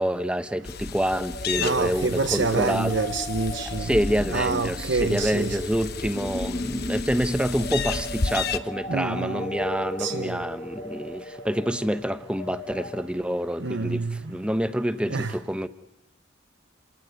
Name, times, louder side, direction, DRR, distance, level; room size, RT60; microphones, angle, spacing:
voice 1, 0.0-2.9 3.8-15.7, equal, 5° right, 1.0 m, -27 dB
sound 1, 0.6-8.6, left 5 dB, 55° left, 1.1 m, -33 dB
sound 2, 1.1-13.0, left 1 dB, 25° left, 1.1 m, -35 dB
voice 2, 1.6-3.9 4.3-5.6 8.9-9.5 10.0-10.4 13.6-14.2 15.1-15.4, right 4 dB, 65° right, 0.8 m, -27 dB
29.0 x 18.5 x 9.4 m
head